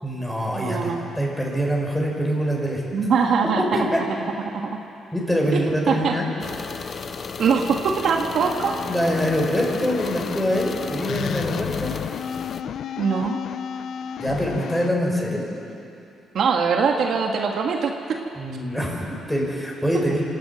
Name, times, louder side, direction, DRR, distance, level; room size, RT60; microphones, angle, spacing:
voice 1, 0.0-2.8 3.6-4.0 5.1-6.3 8.9-11.9 14.2-15.4 18.3-20.2, equal, 5° left, -2 dB, 6.3 m, -24 dB
voice 2, 0.5-1.0 2.9-3.6 4.5-4.8 5.5-5.6 5.9-6.1 7.4-8.7 13.0-13.4 16.3-17.9, right 5 dB, 65° right, 2 dB, 1.6 m, -22 dB
sound 1, 6.4-12.6, left 5 dB, 45° left, 0.9 m, -34 dB
sound 2, 8.4-14.9, left 8 dB, 65° left, 0.6 m, -32 dB
26.5 x 13.0 x 8.9 m, 2.7 s
cardioid pair, 90°, 0 cm